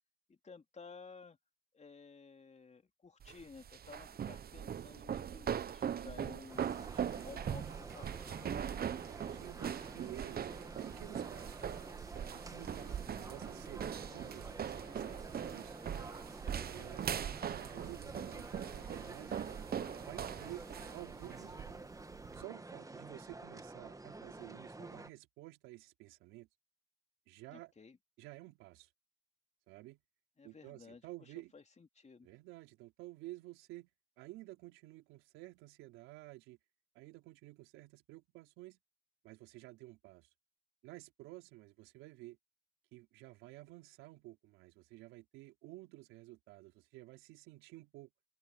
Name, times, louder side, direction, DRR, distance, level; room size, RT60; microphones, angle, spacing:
voice 1, 0.3-1.4 1.7-8.6 27.5-28.0 30.4-32.3, left 4 dB, 35° left, 2.9 m, -55 dB
sound 1, 3.2-22.4, right 8 dB, 50° right, 1.1 m, -41 dB
sound 2, 6.5-25.1, right 2 dB, 15° right, 1.7 m, -50 dB
voice 2, 6.9-7.5 8.3-10.5 10.8-11.7 12.3-15.8 16.7-19.4 19.9-21.9 22.3-26.5 27.3-27.7 28.2-28.9 29.7-30.0 30.4-31.5 32.2-33.9 34.2-36.6 36.9-38.8 39.2-40.3 40.8-42.4 42.9-48.1, right 18 dB, 85° right, 4.0 m, -52 dB
open air
supercardioid pair, 55°, 20 cm